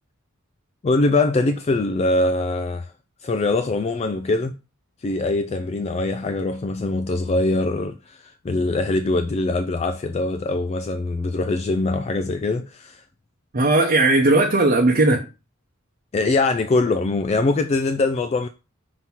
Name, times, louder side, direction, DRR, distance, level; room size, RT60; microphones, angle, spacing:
voice 1, 0.8-2.9 3.2-4.5 5.0-13.0 16.1-18.5, left 2 dB, 30° left, 0.3 m, -22 dB
voice 2, 13.5-15.2, right 2 dB, 40° right, 0.8 m, -17 dB
5.8 x 2.9 x 5.5 m
head